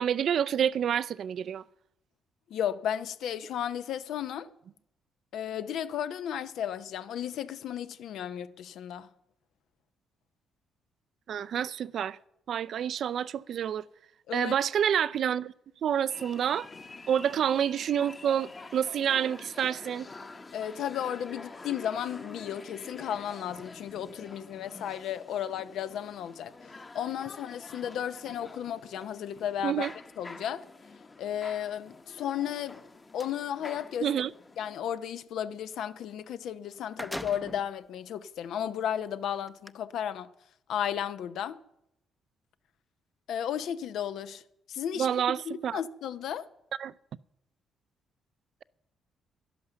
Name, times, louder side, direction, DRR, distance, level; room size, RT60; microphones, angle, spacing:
voice 1, 0.0-1.6 11.3-12.2 12.5-13.8 14.3-15.5 15.8-16.7 17.1-20.1 29.6-29.9 34.0-34.3 45.0-45.8 46.8-46.9, right 9 dB, 65° right, 0.4 m, -28 dB
voice 2, 2.5-4.5 5.3-9.1 14.3-14.5 20.5-29.9 30.2-30.7 31.2-32.8 33.1-34.1 34.6-40.3 40.7-41.6 43.3-44.4 44.7-45.1 45.4-46.5, left 9 dB, 75° left, 0.7 m, -34 dB
sound 1, 16.1-34.8, left 3 dB, 30° left, 1.1 m, -48 dB
sound 2, 32.4-33.4 36.2-36.3 36.6-37.7 38.4-38.5 39.5-39.7, equal, 5° left, 0.6 m, -41 dB
11.0 x 11.0 x 6.8 m
cardioid pair, 90°, 0 cm